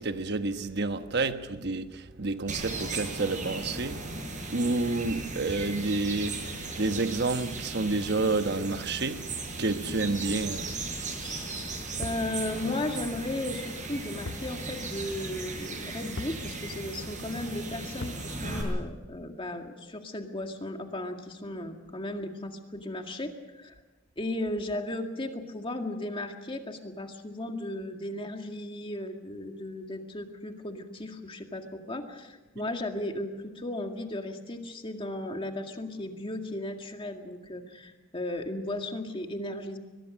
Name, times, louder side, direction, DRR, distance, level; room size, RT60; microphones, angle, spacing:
voice 1, 0.0-4.2 4.5-9.3 9.6-10.8 32.6-32.7, right 3 dB, 60° right, 1.2 m, -29 dB
sound 1, 2.5-18.6, right 3 dB, 40° right, 6.7 m, -37 dB
voice 2, 11.5-23.7 24.2-39.8, left 1 dB, 25° left, 2.1 m, -35 dB
sound 2, 12.0-12.3 14.3-14.5 14.8-14.9 16.2-16.5 18.0-18.3, left 2 dB, 65° left, 0.8 m, -38 dB
22.5 x 21.0 x 6.4 m
head